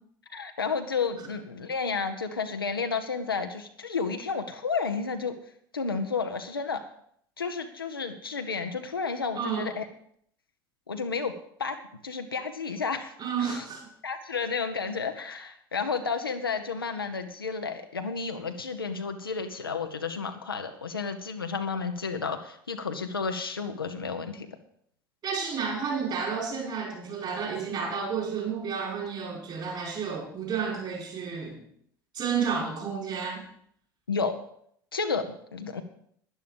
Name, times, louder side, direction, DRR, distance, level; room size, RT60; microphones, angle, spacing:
voice 1, 0.3-5.3 5.7-6.9 7.4-9.9 10.9-11.3 11.6-11.8 12.0-13.1 13.4-13.6 14.0-24.5 34.1-34.3 34.9-35.8, left 5 dB, 80° left, 6 dB, 0.9 m, -31 dB
voice 2, 9.3-9.7 13.2-13.9 25.2-31.7 32.1-33.4, right 6 dB, 40° right, -1 dB, 6.0 m, -31 dB
12.0 x 10.5 x 5.3 m, 0.66 s
figure-of-eight pair, 65°, 12 cm